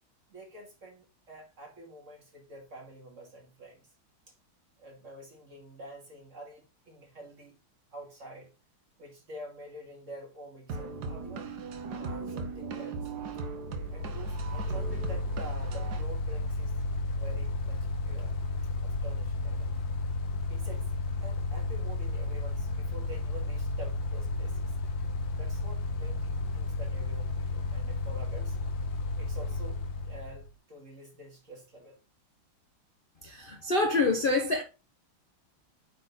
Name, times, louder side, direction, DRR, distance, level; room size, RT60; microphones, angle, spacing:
voice 1, 0.3-3.9 4.3-4.4 4.8-7.6 7.9-8.5 9.0-11.5 12.0-13.1 13.4-13.5 13.9-16.7 17.1-18.4 18.8-19.7 20.5-20.9 21.2-24.7 25.3-28.6 29.2-32.0, right 1 dB, 35° right, 2.6 m, -48 dB
sound 1, 10.7-16.0, right 4 dB, 55° right, 1.4 m, -38 dB
Mechanical fan, 13.6-30.5, left 3 dB, 70° left, 1.5 m, -33 dB
voice 2, 33.2-34.6, left 3 dB, 50° left, 0.6 m, -26 dB
8.7 x 4.3 x 4.0 m
omnidirectional pair, 2.3 m